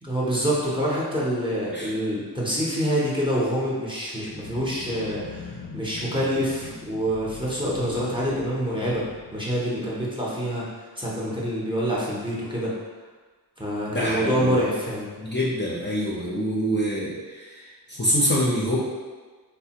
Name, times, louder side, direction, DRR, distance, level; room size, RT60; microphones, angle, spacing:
voice 1, 0.0-9.0 9.3-10.6 11.0-12.7 13.6-15.1, equal, 10° right, -6 dB, 0.6 m, -26 dB
sound 1, 4.3-10.2, left 5 dB, 75° left, 0.5 m, -42 dB
voice 2, 13.9-14.6 15.2-18.8, equal, 25° left, -6 dB, 0.5 m, -26 dB
3.3 x 2.1 x 2.8 m, 1.4 s
wide cardioid pair, 70°, 40 cm